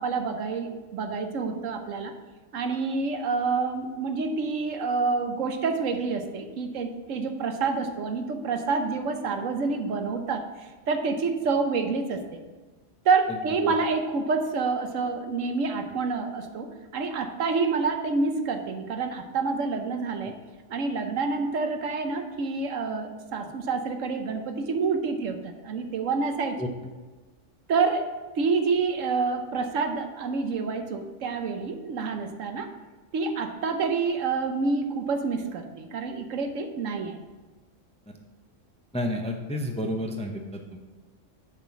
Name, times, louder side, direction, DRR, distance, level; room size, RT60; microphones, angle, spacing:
voice 1, 0.0-2.1 2.5-12.4 13.0-20.3 20.7-26.6 27.7-28.1 28.4-32.7 33.1-37.2, right 4 dB, 75° right, 6 dB, 1.2 m, -28 dB
voice 2, 38.9-40.8, left 1 dB, 5° left, 3 dB, 0.6 m, -30 dB
7.2 x 5.9 x 7.1 m, 1.3 s
omnidirectional pair, 1.3 m